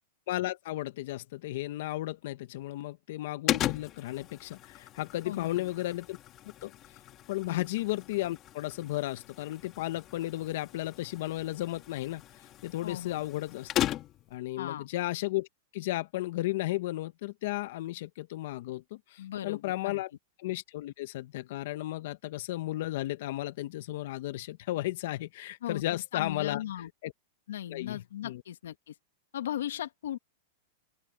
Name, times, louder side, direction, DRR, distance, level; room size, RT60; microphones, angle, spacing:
voice 1, 0.3-6.2 6.6-6.7 7.3-13.7 14.3-15.5 15.7-18.8 19.1-20.1 20.4-26.6 27.0-27.1 27.7-28.4, left 16 dB, 65° left, 1.1 m, -34 dB
sound 1, 3.5-14.4, left 13 dB, 35° left, 2.4 m, -38 dB
voice 2, 5.3-5.7 7.5-7.6 12.8-13.2 14.6-14.9 19.2-20.0 25.6-26.9 27.5-28.9 29.3-30.2, left 11 dB, 80° left, 2.3 m, -37 dB
open air
hypercardioid pair, 125°, 0 cm